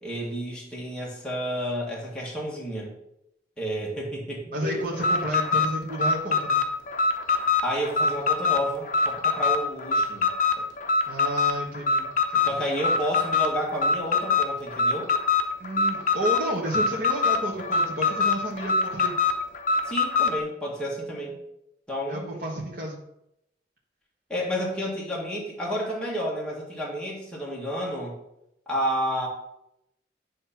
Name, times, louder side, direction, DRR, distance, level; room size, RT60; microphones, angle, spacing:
voice 1, 0.0-2.9 3.6-5.2 7.6-10.3 10.6-10.7 12.5-15.1 19.9-21.4 21.9-22.4 24.3-28.2 28.7-29.3, equal, 5° left, -4 dB, 1.8 m, -31 dB
voice 2, 4.5-6.6 11.1-12.6 15.6-19.1 22.1-23.0, right 1 dB, 50° right, -5 dB, 1.3 m, -31 dB
Alarm, 4.9-20.4, left 4 dB, 45° left, 0.8 m, -24 dB
9.4 x 3.3 x 5.8 m, 0.81 s
head